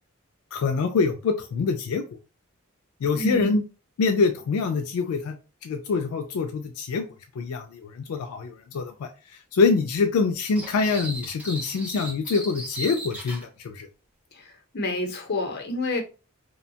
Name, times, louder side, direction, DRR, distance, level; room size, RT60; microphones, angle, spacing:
voice 1, 0.5-2.0 3.0-3.6 4.0-5.4 5.6-7.1 7.4-9.1 9.5-13.9, left 4 dB, 90° left, 0.3 m, -25 dB
voice 2, 3.1-3.5 14.3-16.0, left 2 dB, 50° left, 0.7 m, -29 dB
sound 1, 10.5-13.4, right 1 dB, 5° right, 1.0 m, -37 dB
2.7 x 2.2 x 2.7 m
head